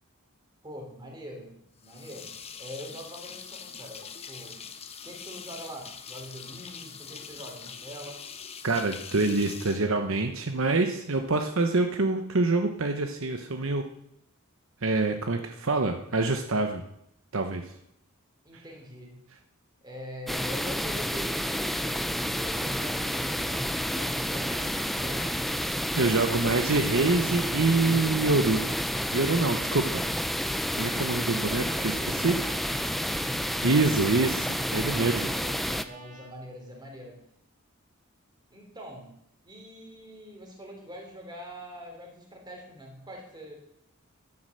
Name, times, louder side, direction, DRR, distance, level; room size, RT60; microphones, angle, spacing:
voice 1, 0.6-2.3 2.6-4.6 5.0-8.2 18.4-19.2 19.8-25.7 33.0-33.5 35.0-37.2 38.5-39.2 39.4-43.5, equal, 20° right, 1 dB, 3.4 m, -44 dB
sound 1, 1.8-10.6, left 6 dB, 30° left, 0.9 m, -43 dB
voice 2, 8.6-13.8 14.8-16.8 17.3-17.6 25.9-28.6 29.1-30.0 30.7-32.4 32.7-32.9 33.6-35.3, right 3 dB, 60° right, 6 dB, 0.9 m, -26 dB
sound 2, 20.3-35.8, equal, ahead, 0.4 m, -30 dB
Trumpet, 31.2-36.3, right 3 dB, 35° right, 1.9 m, -50 dB
12.0 x 9.6 x 6.6 m, 0.75 s
head